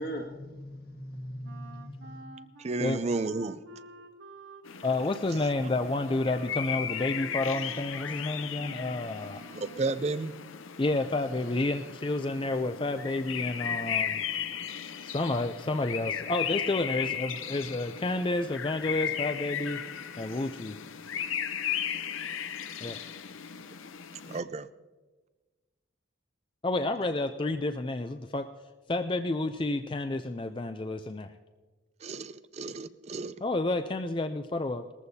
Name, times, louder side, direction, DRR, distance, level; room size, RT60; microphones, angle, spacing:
voice 1, 0.0-2.2, equal, 50° left, 2.0 m, -39 dB
Wind instrument woodwind instrument, 1.4-10.0, right 2 dB, 65° right, 1.3 m, -49 dB
voice 2, 2.6-3.6 9.6-10.3 24.3-24.7 32.0-33.3, right 3 dB, 35° right, 0.4 m, -32 dB
sound 1, 4.7-24.4, left 8 dB, 90° left, 0.7 m, -36 dB
voice 3, 4.8-9.4 10.8-14.2 15.0-19.8 20.2-20.8 22.8-23.0 26.6-28.5 28.9-31.3 33.4-34.9, left 2 dB, 25° left, 0.4 m, -30 dB
20.5 x 14.5 x 2.8 m
head